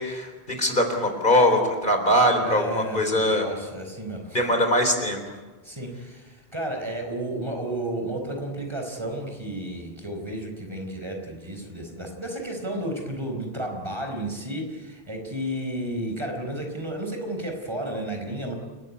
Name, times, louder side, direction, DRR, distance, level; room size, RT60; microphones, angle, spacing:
voice 1, 0.0-3.5 4.3-5.2, equal, 50° left, 5 dB, 4.0 m, -22 dB
voice 2, 2.4-4.4 5.6-18.5, right 1 dB, 25° right, 2 dB, 4.5 m, -32 dB
29.5 x 14.5 x 9.7 m, 1.2 s
omnidirectional pair, 1.1 m